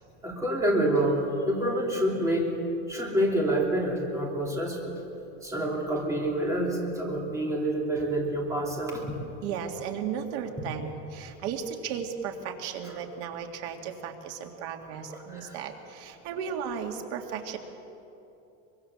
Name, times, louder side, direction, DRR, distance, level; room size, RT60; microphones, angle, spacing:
voice 1, 0.2-2.5 2.9-5.0 5.4-9.0 12.8-12.9 15.1-15.6, right 1 dB, 10° right, -1 dB, 3.2 m, -27 dB
voice 2, 9.4-17.6, right 7 dB, 80° right, 4 dB, 2.4 m, -35 dB
24.0 x 22.0 x 7.3 m, 2.9 s
cardioid pair, 165°, 34 cm